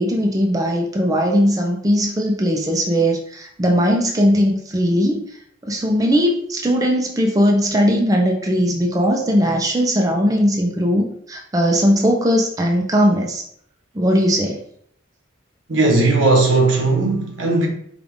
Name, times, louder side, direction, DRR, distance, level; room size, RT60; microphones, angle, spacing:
voice 1, 0.0-5.2 5.6-13.4 13.9-14.6, equal, 20° right, 0.5 m, -18 dB
voice 2, 15.7-17.7, right 3 dB, 85° right, 1.1 m, -17 dB
5.1 x 2.4 x 3.5 m
head